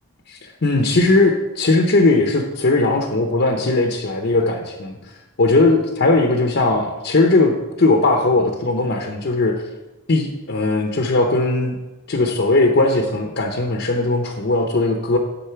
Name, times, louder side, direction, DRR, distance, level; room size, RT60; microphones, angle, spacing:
voice 1, 0.3-5.0 5.4-9.6 10.1-11.8 12.1-15.2, left 2 dB, 55° left, 2 dB, 0.7 m, -18 dB
10.0 x 4.0 x 5.7 m, 1.1 s
head